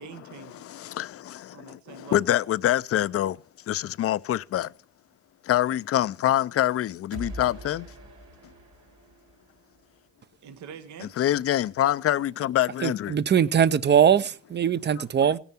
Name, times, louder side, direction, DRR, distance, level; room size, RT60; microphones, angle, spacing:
voice 1, 0.0-0.7 1.5-2.3 10.4-11.2, right 8 dB, 70° right, 1.1 m, -44 dB
voice 2, 0.6-3.4 3.7-4.7 5.4-7.9 11.2-13.2, left 12 dB, 50° left, 0.5 m, -25 dB
sound 1, 7.1-10.0, right 1 dB, 90° right, 3.3 m, -43 dB
voice 3, 12.8-15.4, right 8 dB, 35° right, 0.6 m, -21 dB
17.0 x 7.0 x 4.3 m
cardioid pair, 90°, 30 cm